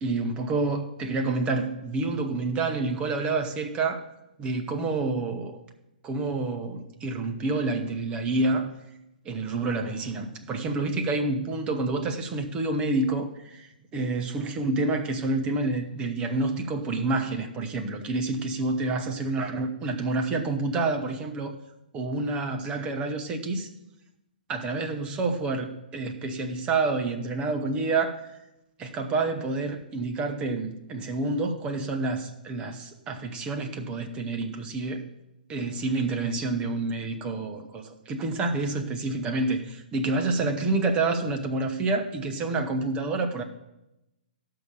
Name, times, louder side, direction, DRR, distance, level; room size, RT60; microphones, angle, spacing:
voice 1, 0.0-4.1 4.4-5.6 6.0-8.7 9.2-21.6 21.9-23.7 24.5-28.4 28.8-35.1 35.5-43.4, right 3 dB, 20° right, 5 dB, 1.3 m, -28 dB
14.0 x 5.9 x 6.8 m, 0.91 s
figure-of-eight pair, 120°, 5 cm